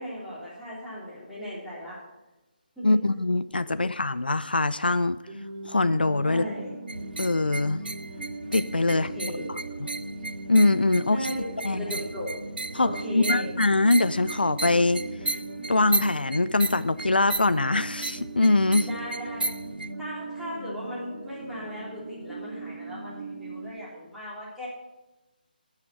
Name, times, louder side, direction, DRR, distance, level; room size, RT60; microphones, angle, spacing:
voice 1, 0.0-2.0 2.8-3.0 6.2-6.7 8.9-9.6 11.1-12.3 12.8-13.5 18.8-19.5 20.0-24.7, equal, ahead, -10 dB, 3.3 m, -37 dB
voice 2, 2.8-5.2 5.6-6.4 7.2-7.8 8.5-9.9 10.5-11.2 11.6-11.8 12.7-15.0 15.7-18.9, left 2 dB, 80° left, 14 dB, 0.4 m, -23 dB
sound 1, 5.3-23.7, right 2 dB, 30° right, 2.8 m, -39 dB
sound 2, 6.9-19.9, right 3 dB, 75° right, 0.5 m, -35 dB
12.5 x 5.8 x 7.5 m, 1.0 s
figure-of-eight pair, 150°, 5 cm